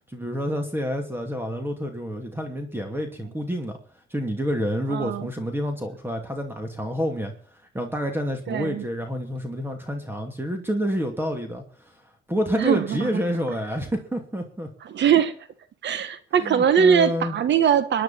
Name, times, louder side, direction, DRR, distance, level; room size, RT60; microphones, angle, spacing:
voice 1, 0.1-3.8 4.1-7.3 7.7-11.6 12.3-14.7 16.4-17.4, equal, 10° right, 4 dB, 2.7 m, -28 dB
voice 2, 4.9-5.3 8.5-8.8 12.6-13.1 14.8-15.3 15.8-18.0, right 8 dB, 65° right, 12 dB, 1.2 m, -21 dB
23.5 x 10.0 x 4.4 m, 0.42 s
cardioid pair, 90°, 20 cm